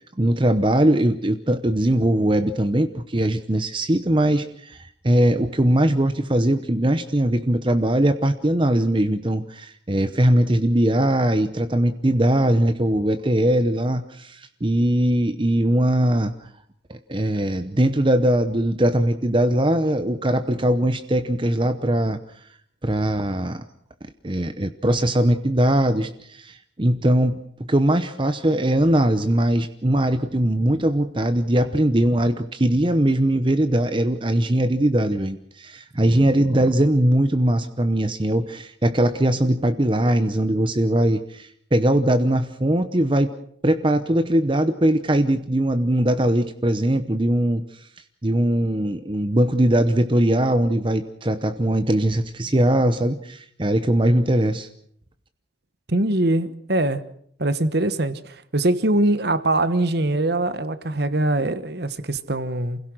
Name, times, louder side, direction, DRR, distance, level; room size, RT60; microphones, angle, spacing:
voice 1, 0.2-16.3 16.9-22.2 22.8-23.6 24.2-43.3 43.6-47.9 48.2-54.7, right 1 dB, 25° right, 0.8 m, -20 dB
voice 2, 55.9-57.0 57.4-62.8, right 1 dB, 55° right, 1.2 m, -22 dB
28.5 x 16.5 x 6.3 m
head